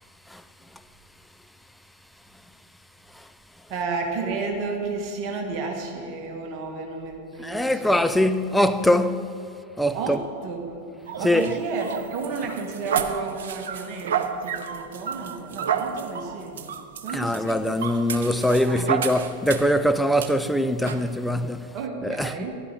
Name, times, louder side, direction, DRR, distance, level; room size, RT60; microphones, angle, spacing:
voice 1, 3.7-8.0 9.9-10.8 11.2-16.6 17.0-17.7 18.7-18.9 21.7-22.6, right 4 dB, 40° right, 1.7 m, -32 dB
voice 2, 7.4-9.4 9.8-10.2 11.2-11.5 17.1-21.7 22.0-22.5, equal, 5° left, 0.5 m, -23 dB
sound 1, 11.1-19.8 20.2-20.3 20.8-21.0, right 7 dB, 60° right, 0.6 m, -30 dB
14.5 x 11.5 x 3.6 m
figure-of-eight pair, 90°, 0 cm